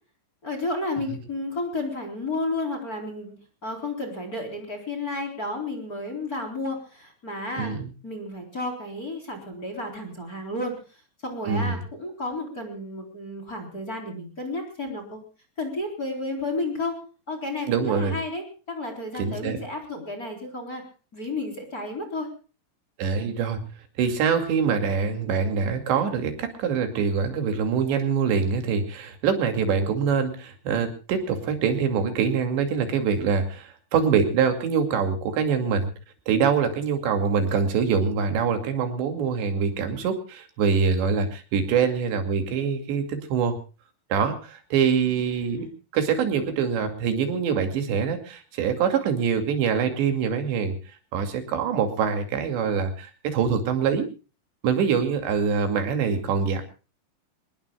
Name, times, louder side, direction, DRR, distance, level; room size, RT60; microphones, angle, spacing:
voice 1, 0.4-3.4 3.6-7.7 8.0-15.2 15.6-17.0 17.3-20.8 21.1-22.3 45.2-45.7, left 2 dB, 20° left, 5 dB, 3.8 m, -32 dB
voice 2, 11.5-11.8 17.7-18.2 19.2-19.6 23.0-23.6 24.0-35.9 36.3-43.6 44.1-45.7 45.9-50.8 51.1-54.1 54.6-56.6, right 6 dB, 75° right, 6 dB, 4.6 m, -24 dB
26.0 x 20.5 x 2.3 m, 0.35 s
omnidirectional pair, 5.2 m